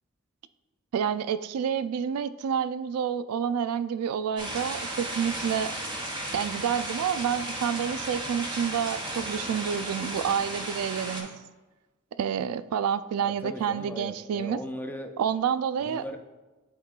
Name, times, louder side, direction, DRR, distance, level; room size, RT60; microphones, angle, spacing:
voice 1, 0.9-5.7 6.3-11.3 12.2-14.6 15.2-16.0, right 8 dB, 90° right, 14 dB, 0.3 m, -28 dB
sound 1, 4.4-11.2, right 1 dB, 20° right, 1.0 m, -34 dB
voice 2, 13.2-15.2 15.8-16.2, equal, 10° left, 4 dB, 0.4 m, -38 dB
11.0 x 3.7 x 2.4 m, 1.2 s
head